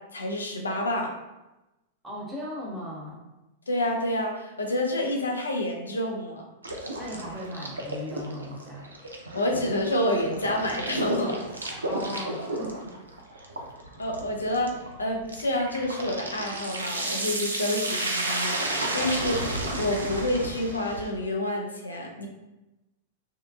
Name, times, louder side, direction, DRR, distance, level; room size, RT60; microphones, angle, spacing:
voice 1, 0.1-1.1 3.7-6.4 9.3-11.4 14.0-18.6 18.9-19.4 19.8-22.3, left 1 dB, 75° left, 1 dB, 0.5 m, -28 dB
voice 2, 2.0-3.2 7.0-8.9 11.9-12.9, left 1 dB, 15° right, -5 dB, 0.8 m, -37 dB
sound 1, 6.6-21.1, right 1 dB, 75° right, 0.4 m, -32 dB
2.8 x 2.4 x 2.3 m, 1.0 s
figure-of-eight pair, 95°, 0 cm